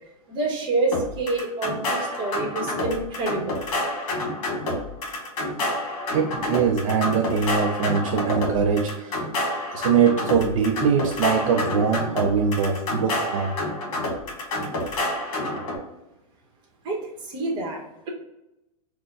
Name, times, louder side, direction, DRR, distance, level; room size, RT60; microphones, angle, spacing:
voice 1, 0.3-3.6 16.8-18.1, right 2 dB, 25° right, 0 dB, 0.9 m, -27 dB
sound 1, 0.9-15.8, left 1 dB, 55° left, 1.5 m, -28 dB
voice 2, 6.1-9.3 9.7-13.5, right 6 dB, 55° right, 2 dB, 0.5 m, -22 dB
4.2 x 2.1 x 3.6 m, 0.93 s
supercardioid pair, 155°, 20 cm